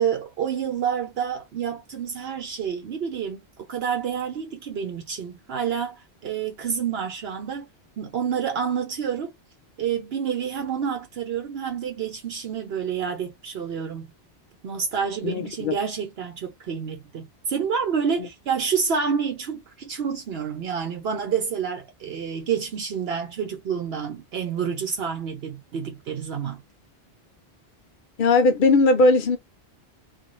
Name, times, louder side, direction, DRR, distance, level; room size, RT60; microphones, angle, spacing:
voice 1, 0.0-3.4 3.7-7.7 8.0-9.3 9.8-14.1 14.6-26.6, right 7 dB, 70° right, 0.9 m, -28 dB
voice 2, 15.2-15.7 18.2-18.3 28.2-29.4, left 3 dB, 55° left, 0.8 m, -19 dB
2.5 x 2.4 x 3.0 m
omnidirectional pair, 1.1 m